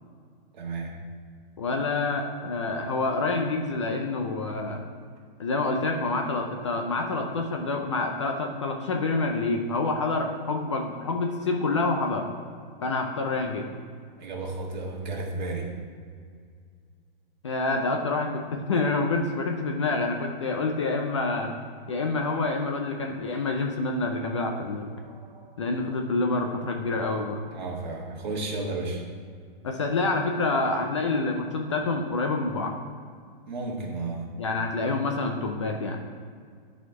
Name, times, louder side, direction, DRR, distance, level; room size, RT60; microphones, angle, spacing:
voice 1, 0.5-1.0 12.7-12.8 14.2-15.7 25.0-25.6 27.5-29.0 33.5-34.3, right 3 dB, 50° right, -1 dB, 1.7 m, -33 dB
voice 2, 1.6-4.8 5.4-12.3 12.8-13.7 17.4-21.5 21.9-24.9 25.6-27.4 29.6-32.7 34.4-36.0, left 3 dB, 30° left, 3 dB, 0.5 m, -27 dB
12.0 x 4.2 x 4.7 m, 2.1 s
hypercardioid pair, 175°, 29 cm